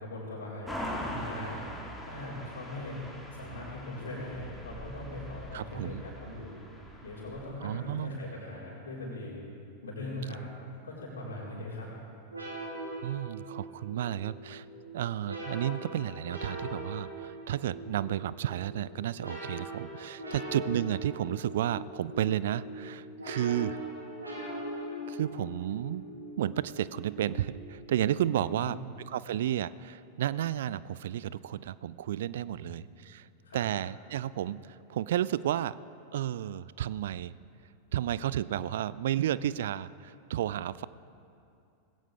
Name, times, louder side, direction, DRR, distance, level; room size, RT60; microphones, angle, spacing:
voice 1, 0.0-1.6 2.0-3.0 3.3-6.6 7.0-9.4 9.8-10.4 10.8-11.9 28.3-28.8 32.5-32.7 33.4-33.6, left 1 dB, 70° left, -5 dB, 4.3 m, -40 dB
sound 1, 0.7-7.5, equal, 5° left, 2.6 m, -42 dB
voice 2, 5.5-6.0 7.6-8.2 13.0-14.7 14.9-23.8 25.1-26.0 26.4-28.8 29.1-33.3 33.5-35.7 36.1-37.4 37.9-40.9, right 11 dB, 60° right, 18 dB, 0.3 m, -32 dB
sound 2, 12.3-28.5, right 1 dB, 80° right, 4.3 m, -41 dB
19.5 x 16.5 x 3.5 m, 2.6 s
figure-of-eight pair, 90°, 0 cm